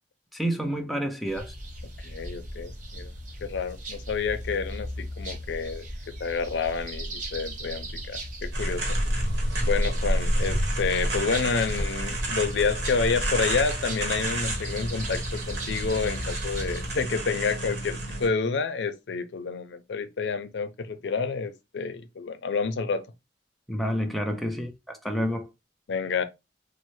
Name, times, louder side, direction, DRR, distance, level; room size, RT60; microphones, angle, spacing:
voice 1, 0.3-1.5 23.7-25.5, equal, ahead, 0.4 m, -29 dB
sound 1, 1.2-17.0, equal, 45° right, 0.7 m, -36 dB
voice 2, 2.0-3.1 3.4-5.9 6.2-9.0 9.6-23.0 25.9-26.2, left 5 dB, 80° left, 0.4 m, -29 dB
sound 2, 8.5-18.3, right 1 dB, 70° right, 1.0 m, -29 dB
3.1 x 2.0 x 3.0 m
head